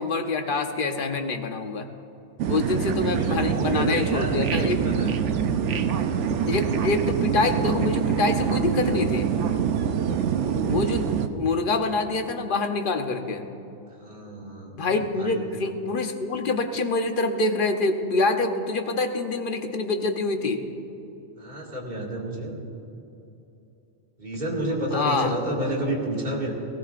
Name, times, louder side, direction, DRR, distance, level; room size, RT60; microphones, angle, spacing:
voice 1, 0.0-1.9 2.5-4.8 6.5-9.3 10.6-11.1 11.3-13.5 14.8-20.6 24.9-25.3, left 3 dB, 50° left, 6 dB, 1.0 m, -26 dB
sound 1, 2.4-11.3, right 8 dB, 75° right, 1.0 m, -25 dB
voice 2, 3.0-5.2 14.0-15.4 21.4-22.6 24.2-26.5, right 1 dB, 40° right, -3 dB, 2.2 m, -30 dB
18.0 x 16.5 x 2.5 m, 2.9 s
omnidirectional pair, 1.2 m